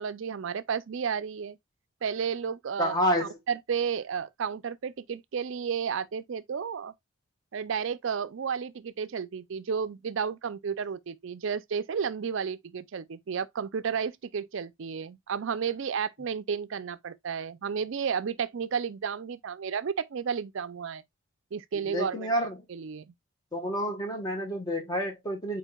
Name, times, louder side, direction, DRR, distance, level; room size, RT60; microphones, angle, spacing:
voice 1, 0.0-1.6 2.0-3.0 3.2-6.9 7.5-21.0 21.5-23.1, right 6 dB, 60° right, 0.4 m, -32 dB
voice 2, 2.8-3.4 21.7-22.6 23.5-25.6, equal, 20° left, 1.2 m, -29 dB
4.5 x 4.5 x 2.3 m
head